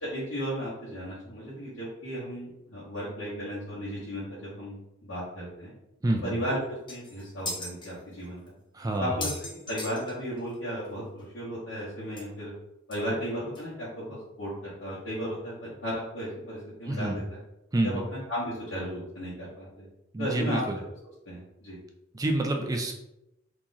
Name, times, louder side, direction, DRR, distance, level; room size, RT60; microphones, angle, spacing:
voice 1, 0.0-5.7 6.2-6.6 6.9-8.4 9.0-9.3 9.7-12.5 12.9-17.4 17.8-18.0 18.3-19.9 20.2-20.6 21.2-21.8, equal, 80° left, -10 dB, 1.1 m, -35 dB
voice 2, 6.0-6.4 8.7-9.2 16.9-17.2 17.7-18.0 20.1-20.8 22.1-22.9, right 1 dB, 20° right, 3 dB, 0.3 m, -28 dB
sound 1, 6.5-6.6 6.9-7.9 8.5-8.6 8.9-10.5 10.8-10.9 11.2-11.3 12.2-12.3 12.9-13.0 13.6-13.7, left 2 dB, 25° left, 0.7 m, -37 dB
2.9 x 2.4 x 3.9 m, 0.88 s
head